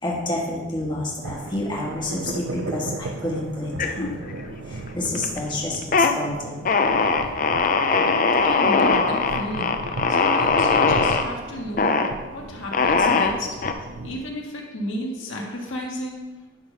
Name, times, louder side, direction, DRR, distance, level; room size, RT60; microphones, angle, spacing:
voice 1, 0.0-4.2 4.7-6.6, left 1 dB, 25° left, -3 dB, 1.5 m, -29 dB
sound 1, 1.2-14.2, right 2 dB, 70° right, 0.6 m, -36 dB
sound 2, 3.8-4.5 4.9-5.4 5.7-6.1 6.7-11.3 11.8-12.1 12.7-13.7, left 4 dB, 40° left, 0.5 m, -20 dB
voice 2, 8.4-11.9 12.3-13.6 14.0-16.3, equal, 80° left, -1 dB, 1.7 m, -33 dB
11.0 x 3.8 x 5.6 m, 1.3 s
head